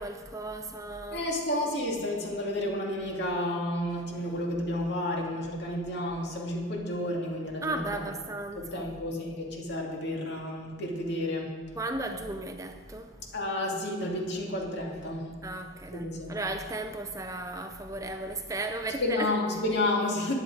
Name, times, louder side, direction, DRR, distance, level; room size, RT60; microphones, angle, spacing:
voice 1, 0.0-1.2 7.6-8.9 11.8-13.3 15.4-19.3, right 2 dB, 15° right, 0.5 m, -35 dB
voice 2, 1.1-8.0 8.5-11.5 13.3-15.3 15.9-16.3 19.0-20.3, left 1 dB, 55° left, 2.5 m, -31 dB
15.0 x 10.0 x 4.9 m
head